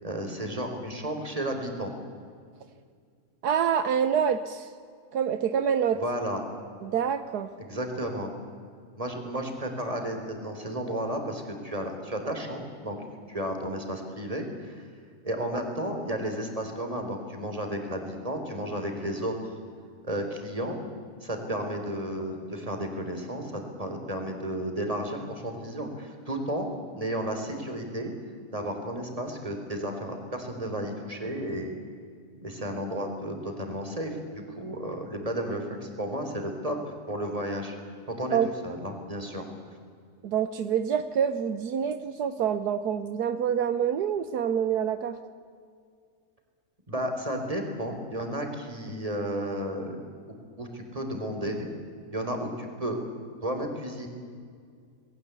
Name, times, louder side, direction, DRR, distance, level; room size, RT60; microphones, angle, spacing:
voice 1, 0.0-1.9 5.9-6.4 7.6-8.3 9.0-13.0 13.3-14.9 15.2-19.5 20.0-20.8 21.2-26.7 27.0-28.1 28.5-31.8 32.4-36.8 37.1-37.8 38.1-38.4 38.6-39.5 46.9-50.0 50.6-51.7 52.1-53.0 53.4-54.1, equal, 20° right, 4 dB, 4.1 m, -33 dB
voice 2, 3.4-4.7 5.1-6.0 6.8-7.5 38.3-38.5 40.2-45.1, right 8 dB, 75° right, 11 dB, 1.5 m, -26 dB
28.0 x 21.0 x 8.4 m, 2.2 s
omnidirectional pair, 1.7 m